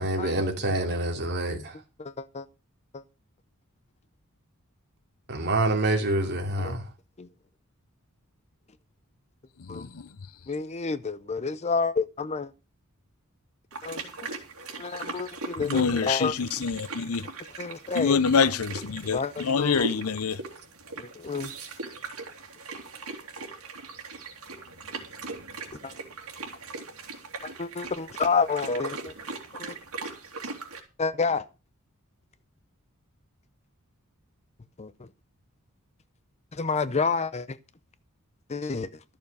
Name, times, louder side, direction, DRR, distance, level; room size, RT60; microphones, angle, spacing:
voice 1, 0.0-1.7 5.3-6.8, right 2 dB, 50° right, 2.9 m, -26 dB
voice 2, 2.0-2.5 2.9-3.0 6.6-6.8 7.2-7.3 9.7-9.9 10.5-12.5 13.8-14.0 14.8-16.3 17.6-18.2 19.1-19.9 21.0-21.5 25.8-25.9 27.4-29.1 29.6-29.7 31.0-31.5 34.8-34.9 36.5-37.6 38.5-38.9, left 4 dB, 30° left, 0.6 m, -29 dB
voice 3, 9.6-10.1 15.6-17.3 17.9-20.4, left 5 dB, 75° left, 0.7 m, -26 dB
sound 1, 13.7-30.8, right 3 dB, 80° right, 3.1 m, -40 dB
13.5 x 6.9 x 6.7 m
head